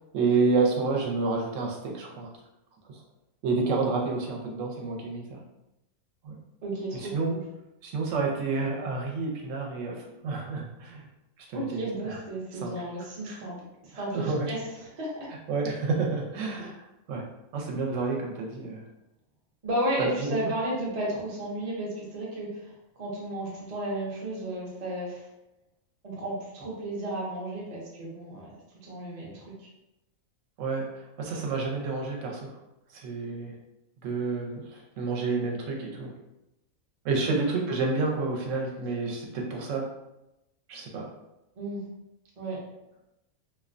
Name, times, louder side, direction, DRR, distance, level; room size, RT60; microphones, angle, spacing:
voice 1, 0.1-2.3 3.4-5.4 6.2-6.4 6.9-7.4 7.8-11.0 11.5-12.2 12.6-12.7 13.2-13.4 13.9-14.5 15.5-16.7 17.1-17.2 17.5-18.8 20.0-20.5 30.6-32.5 32.9-33.5 34.0-36.1 37.0-39.9 40.7-41.1, right 4 dB, 70° right, 0 dB, 0.9 m, -29 dB
voice 2, 6.6-7.4 11.5-13.5 13.8-14.6 14.9-15.3 16.6-16.7 19.6-22.7 23.0-25.2 26.0-28.5 28.8-29.7 41.6-41.8 42.4-42.6, right 1 dB, 45° right, -5 dB, 0.5 m, -33 dB
2.4 x 2.1 x 2.4 m, 0.92 s
omnidirectional pair, 1.4 m